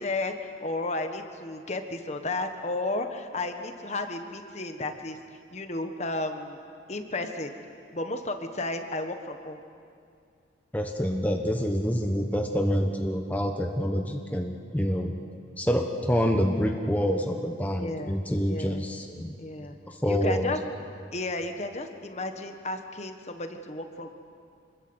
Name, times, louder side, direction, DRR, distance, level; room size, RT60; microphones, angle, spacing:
voice 1, 0.0-5.2 5.5-6.6 6.9-7.5 7.9-9.6 17.8-18.2 18.5-18.8 19.4-19.8 20.0-20.6 21.1-24.2, left 2 dB, 35° left, 6 dB, 1.4 m, -33 dB
voice 2, 10.7-15.1 15.6-19.3 19.9-20.5, equal, 10° left, 3 dB, 1.2 m, -27 dB
26.5 x 21.5 x 8.1 m, 2.3 s
head